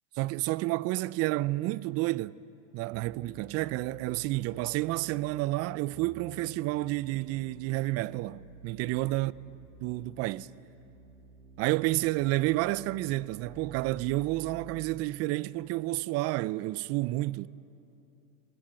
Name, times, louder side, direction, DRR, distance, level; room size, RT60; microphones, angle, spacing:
voice 1, 0.2-2.4 2.7-9.3 9.8-10.5 11.6-17.5, right 18 dB, 35° right, 0.4 m, -30 dB
sound 1, 2.9-14.9, right 2 dB, 60° right, 5.4 m, -52 dB
21.5 x 15.5 x 9.6 m
hypercardioid pair, 110°, 43 cm